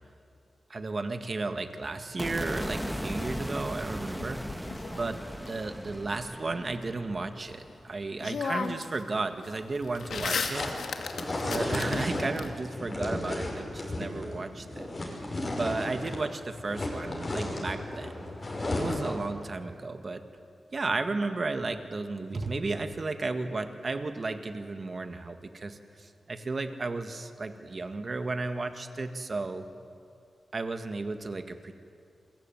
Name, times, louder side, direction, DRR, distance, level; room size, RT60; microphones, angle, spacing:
voice 1, 0.7-4.4 4.9-10.7 11.3-18.3 18.8-20.2 20.7-29.7 30.5-31.7, right 3 dB, 40° right, 8 dB, 1.7 m, -34 dB
sound 1, 2.2-8.4, equal, ahead, 1.2 m, -38 dB
sound 2, 4.2-5.5 7.7-7.8 8.2-9.0 9.3-12.5, left 5 dB, 75° left, 2.1 m, -35 dB
sound 3, 9.9-16.3 16.5-19.3, left 1 dB, 30° left, 5.9 m, -34 dB
27.5 x 22.5 x 9.2 m, 2.5 s
wide cardioid pair, 125°, 0 cm